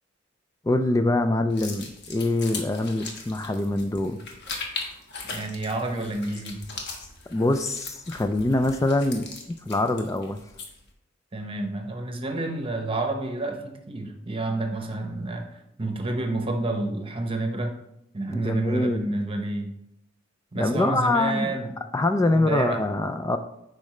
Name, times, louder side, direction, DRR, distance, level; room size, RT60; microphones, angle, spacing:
voice 1, 0.6-4.2 7.3-10.4 18.3-19.1 20.6-21.6 21.9-23.4, left 2 dB, 15° left, 8 dB, 0.3 m, -24 dB
sound 1, 1.5-10.9, left 3 dB, 60° left, 1.2 m, -39 dB
voice 2, 5.3-6.6 11.3-17.8 18.1-19.7 20.5-21.7 22.3-22.8, right 2 dB, 25° right, 4 dB, 0.9 m, -29 dB
8.6 x 5.3 x 3.2 m, 0.80 s
head